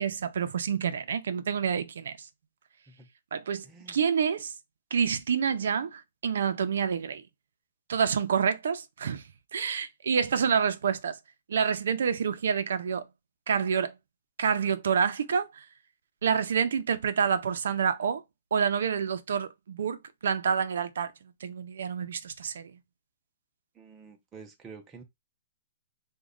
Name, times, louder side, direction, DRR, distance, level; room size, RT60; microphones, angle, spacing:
voice 1, 0.0-2.1 3.3-4.5 4.9-7.2 7.9-9.2 9.5-11.2 11.5-13.1 13.5-13.9 14.4-15.6 16.2-18.2 18.5-20.0 20.2-21.1 21.4-22.7, right 7 dB, 75° right, 0.4 m, -28 dB
voice 2, 3.6-4.0 23.7-25.0, right 5 dB, 15° right, 0.5 m, -49 dB
3.1 x 2.2 x 3.6 m
hypercardioid pair, 165°, 0 cm